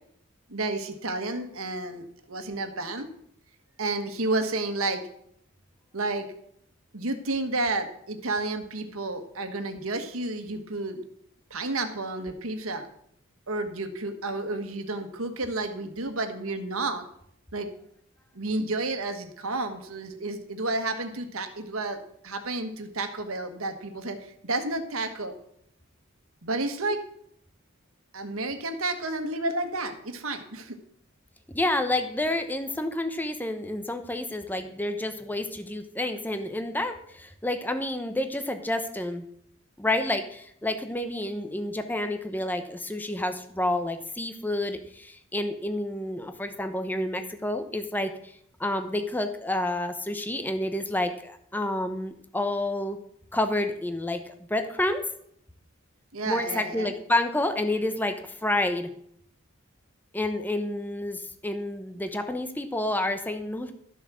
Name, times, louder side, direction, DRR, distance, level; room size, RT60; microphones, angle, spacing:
voice 1, 0.5-3.1 3.8-5.0 5.9-6.3 6.9-11.0 11.5-12.9 13.5-17.0 17.5-17.7 18.3-22.0 22.2-25.3 26.4-27.0 28.1-30.8 56.1-56.9, right 2 dB, 90° right, 7 dB, 1.6 m, -31 dB
voice 2, 31.5-39.2 39.8-48.3 48.6-53.0 53.3-55.1 56.2-58.9 60.1-63.7, left 1 dB, 10° left, 7 dB, 0.8 m, -29 dB
13.0 x 7.3 x 6.3 m, 0.68 s
head